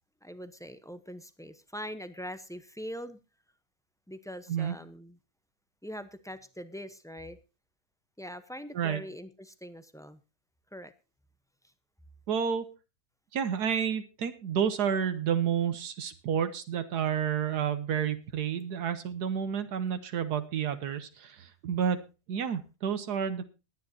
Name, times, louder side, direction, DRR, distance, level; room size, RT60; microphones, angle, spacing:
voice 1, 0.2-3.2 4.1-5.2 5.8-7.4 8.2-10.2 10.7-10.9, equal, 5° left, 11 dB, 0.4 m, -42 dB
voice 2, 12.3-12.6 13.3-22.0 22.3-23.4, right 8 dB, 80° right, 10 dB, 1.5 m, -30 dB
20.0 x 9.9 x 2.7 m, 0.29 s
omnidirectional pair, 1.7 m